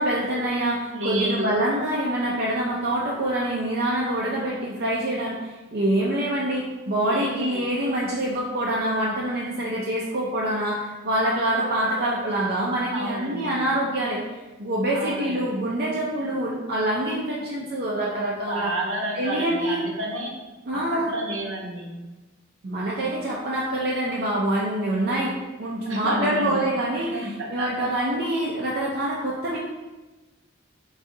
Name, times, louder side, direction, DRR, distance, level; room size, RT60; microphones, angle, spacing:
voice 1, 0.0-14.2 14.6-18.7 19.1-19.8 20.7-21.1 22.6-29.6, right 1 dB, 50° right, -5 dB, 0.4 m, -25 dB
voice 2, 0.9-1.5 7.0-7.6 12.9-13.6 14.9-15.4 18.5-20.3 20.7-21.9 25.9-26.6 27.1-27.7, right 1 dB, 70° right, -2 dB, 0.8 m, -30 dB
4.6 x 2.3 x 2.6 m, 1.2 s
head